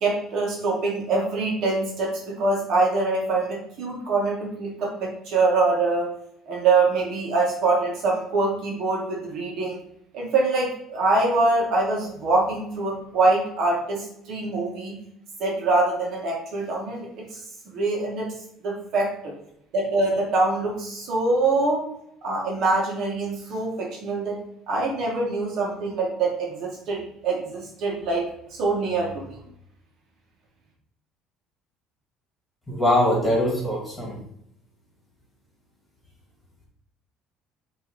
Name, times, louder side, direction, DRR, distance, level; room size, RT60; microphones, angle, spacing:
voice 1, 0.0-6.1 6.5-9.8 10.1-14.9 15.4-17.1 17.7-18.3 18.6-19.3 19.7-21.8 22.2-24.4 24.7-28.2 28.6-29.4, right 3 dB, 50° right, -2 dB, 1.8 m, -24 dB
voice 2, 32.7-34.2, left 1 dB, 10° left, -3 dB, 1.8 m, -22 dB
7.9 x 3.0 x 4.3 m, 0.73 s
cardioid pair, 175°, 0 cm